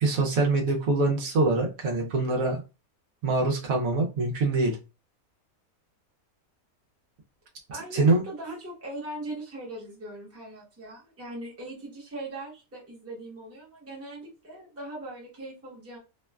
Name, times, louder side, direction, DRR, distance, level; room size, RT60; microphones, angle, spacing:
voice 1, 0.0-2.6 3.2-4.8 7.9-8.2, right 3 dB, 75° right, 0 dB, 1.1 m, -24 dB
voice 2, 7.7-16.0, right 1 dB, 15° right, -4 dB, 0.7 m, -40 dB
2.9 x 2.1 x 2.3 m, 0.30 s
omnidirectional pair, 1.5 m